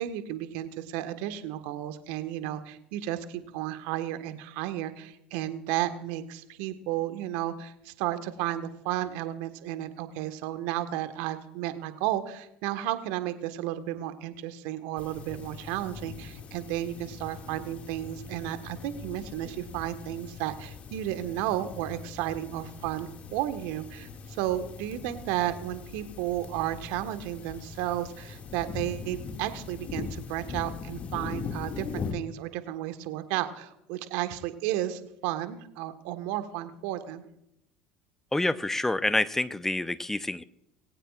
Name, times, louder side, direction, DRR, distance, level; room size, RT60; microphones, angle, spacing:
voice 1, 0.0-37.2, right 13 dB, 65° right, 10 dB, 1.5 m, -33 dB
sound 1, 15.0-32.1, left 5 dB, 40° left, 2.2 m, -41 dB
voice 2, 38.3-40.4, left 2 dB, 10° left, 14 dB, 0.7 m, -27 dB
21.0 x 17.5 x 2.5 m, 0.81 s
hypercardioid pair, 70°, 4 cm